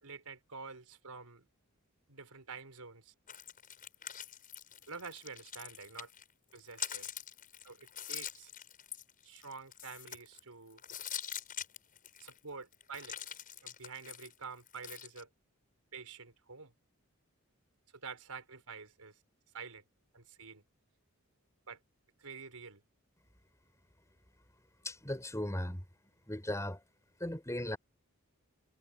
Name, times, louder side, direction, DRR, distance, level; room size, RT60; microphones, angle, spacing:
voice 1, 0.0-1.5 2.1-3.1 4.9-6.1 6.5-7.1 7.6-8.5 9.2-10.8 12.2-15.3 15.9-16.7 17.9-19.2 19.5-19.8 20.1-20.6 21.7-21.8 22.2-22.8, right 5 dB, 85° right, 4.6 m, -48 dB
sound 1, 3.3-6.2 6.5-10.4 10.8-12.4 12.7-15.2, left 10 dB, 40° left, 7.5 m, -44 dB
voice 2, 24.8-25.8 26.3-26.8 27.2-27.8, left 1 dB, 15° left, 6.1 m, -37 dB
head